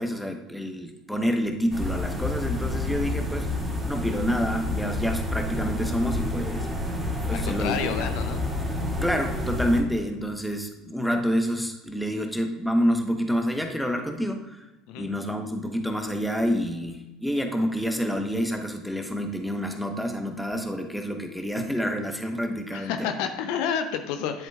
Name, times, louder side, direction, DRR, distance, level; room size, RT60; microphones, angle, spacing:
voice 1, 0.0-6.7 7.2-8.1 8.9-14.6 15.0-23.1, equal, ahead, 4 dB, 1.1 m, -28 dB
sound 1, 1.7-9.8, left 1 dB, 20° right, 2.4 m, -29 dB
voice 2, 7.3-8.4 14.9-15.1 22.7-24.5, left 7 dB, 65° left, 7 dB, 0.7 m, -30 dB
10.0 x 7.9 x 2.4 m, 1.1 s
hypercardioid pair, 70°, 0 cm